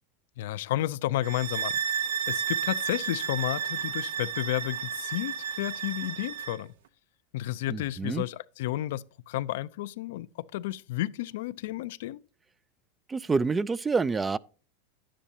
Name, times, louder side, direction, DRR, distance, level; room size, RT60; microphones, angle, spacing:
voice 1, 0.4-1.8 2.3-6.7 7.3-12.2, left 15 dB, 75° left, 0.5 m, -32 dB
sound 1, 1.2-6.6, right 8 dB, 80° right, 0.8 m, -32 dB
voice 2, 7.7-8.2 13.1-14.4, right 4 dB, 15° right, 0.4 m, -27 dB
10.5 x 10.0 x 2.8 m
hypercardioid pair, 115°, 0 cm